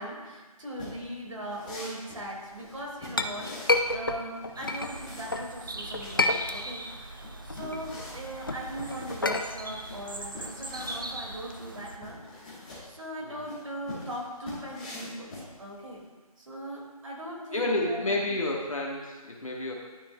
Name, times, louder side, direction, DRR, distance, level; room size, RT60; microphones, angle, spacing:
voice 1, 0.0-12.6 12.8-15.3 15.6-16.0 16.4-18.4, right 1 dB, 55° right, -2 dB, 2.5 m, -40 dB
sound 1, 0.7-16.0, left 2 dB, 15° left, 1.5 m, -45 dB
Chink clink, 2.6-5.5 5.9-7.0 7.3-11.4, left 2 dB, 35° left, 0.4 m, -30 dB
sound 2, 4.6-12.0, right 2 dB, 35° right, 0.5 m, -41 dB
voice 2, 17.5-19.7, left 2 dB, 60° left, -1 dB, 1.4 m, -30 dB
12.0 x 6.1 x 2.4 m, 1.3 s
figure-of-eight pair, 165°, 19 cm